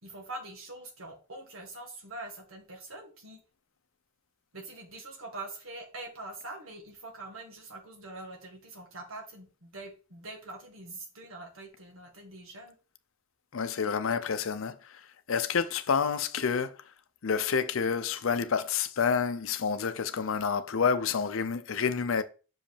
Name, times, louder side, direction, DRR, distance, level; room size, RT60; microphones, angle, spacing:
voice 1, 0.0-3.4 4.5-12.7, right 2 dB, 80° right, 1.7 m, -44 dB
voice 2, 13.5-14.8 15.3-16.7 17.2-22.2, left 6 dB, 70° left, 0.5 m, -28 dB
5.7 x 5.2 x 3.4 m
head